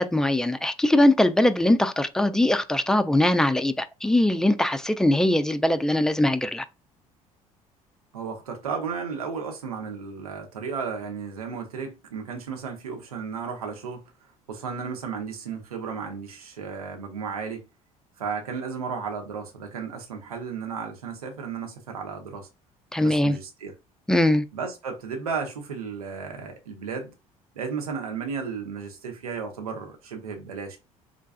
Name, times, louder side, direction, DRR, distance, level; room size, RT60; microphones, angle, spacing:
voice 1, 0.0-6.6 22.9-23.4 24.1-24.4, left 1 dB, 5° left, 0.3 m, -21 dB
voice 2, 8.1-14.0 14.5-17.6 18.2-22.5 23.0-23.7 24.5-27.1 27.5-30.8, right 5 dB, 80° right, 0.8 m, -34 dB
3.7 x 2.3 x 2.3 m
figure-of-eight pair, 60°, 19 cm